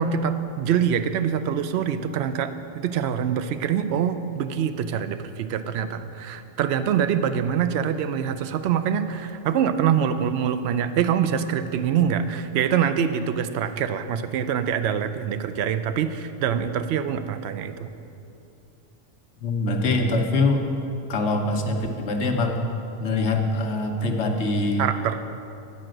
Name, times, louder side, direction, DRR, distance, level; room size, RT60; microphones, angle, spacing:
voice 1, 0.0-17.9 24.8-25.2, right 8 dB, 65° right, 10 dB, 0.7 m, -25 dB
voice 2, 19.4-20.7 21.1-22.6 23.0-24.8, left 2 dB, 70° left, 3 dB, 1.1 m, -23 dB
9.8 x 4.9 x 7.7 m, 2.8 s
omnidirectional pair, 1.3 m